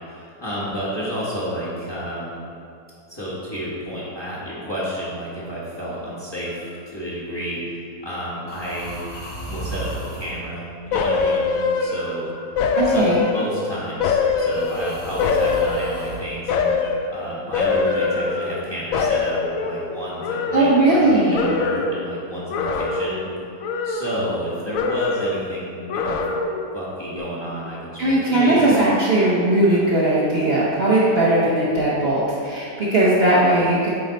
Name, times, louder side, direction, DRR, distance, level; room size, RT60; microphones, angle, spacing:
voice 1, 0.1-2.3 3.1-7.8 8.0-9.0 9.5-10.6 10.9-12.3 12.8-16.7 17.1-23.3 23.8-26.2 26.7-28.8 29.6-29.9, equal, 15° left, -8 dB, 1.2 m, -30 dB
sound 1, 6.5-6.8 8.5-10.4 11.8-12.9 14.4-16.2 17.6-18.8, right 1 dB, 85° left, 2.5 m, -35 dB
sound 2, 10.9-12.2 12.6-13.6 14.0-16.1 16.5-17.1 17.5-18.7 18.9-21.1 21.3-22.0 22.5-23.3 23.6-24.5 24.7-25.5 25.9-26.7 27.1-27.2, left 4 dB, 70° left, 0.9 m, -23 dB
voice 2, 12.8-13.3 20.5-21.5 28.0-33.9, right 1 dB, 45° right, -8 dB, 1.0 m, -18 dB
8.4 x 3.9 x 4.0 m, 2.4 s
omnidirectional pair, 1.8 m